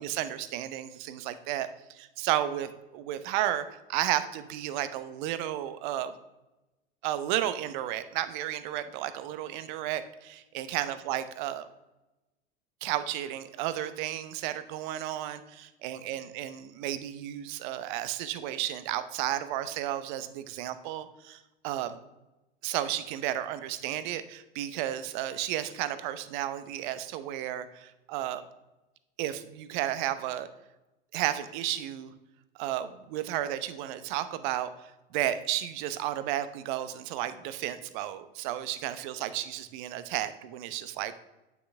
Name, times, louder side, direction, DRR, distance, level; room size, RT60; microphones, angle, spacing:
voice 1, 0.0-6.1 7.0-11.7 12.8-22.0 22.6-28.4 29.2-30.5 31.1-32.1 32.6-41.2, right 12 dB, 50° right, 12 dB, 0.8 m, -33 dB
9.4 x 5.9 x 3.4 m, 1.0 s
figure-of-eight pair, 85°, 30 cm